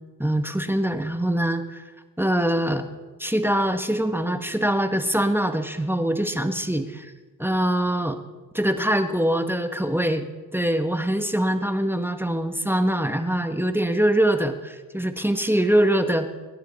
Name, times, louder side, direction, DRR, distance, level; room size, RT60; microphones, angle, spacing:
voice 1, 0.2-1.8 2.2-2.8 3.2-7.1 7.4-8.2 8.5-10.2 10.5-16.3, right 1 dB, 5° right, 8 dB, 1.2 m, -23 dB
22.0 x 10.0 x 4.1 m, 1.3 s
supercardioid pair, 55°, 43 cm